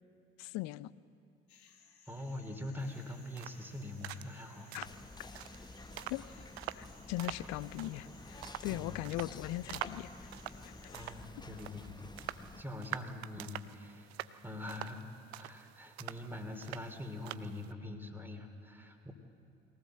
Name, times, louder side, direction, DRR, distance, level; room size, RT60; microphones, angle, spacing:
voice 1, 0.4-0.9 4.7-4.9 6.1-6.2 6.7-10.3 10.6-11.2, left 16 dB, 60° left, 19 dB, 0.6 m, -40 dB
sound 1, 1.5-11.1, left 6 dB, 80° left, 1.7 m, -62 dB
voice 2, 2.1-4.7 8.7-9.0 10.9-12.1 12.6-14.1 14.4-19.1, left 2 dB, 5° right, 4 dB, 2.9 m, -44 dB
sound 2, 2.8-17.7, right 14 dB, 75° right, 0.6 m, -47 dB
Whispering, 4.9-12.6, left 2 dB, 15° left, 1.0 m, -50 dB
21.0 x 18.0 x 7.7 m, 2.5 s
figure-of-eight pair, 55°, 32 cm